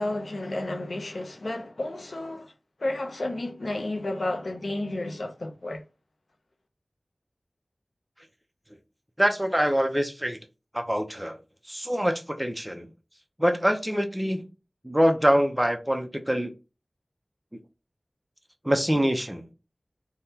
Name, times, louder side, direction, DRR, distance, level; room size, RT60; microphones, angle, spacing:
voice 1, 0.0-2.5 2.8-5.8, left 2 dB, 75° left, 0.6 m, -31 dB
voice 2, 9.2-10.4 10.7-11.4 11.7-12.9 13.4-14.5 14.8-16.5 18.6-19.4, equal, 10° right, 0.6 m, -24 dB
3.4 x 2.2 x 2.8 m
wide cardioid pair, 50°, 0 cm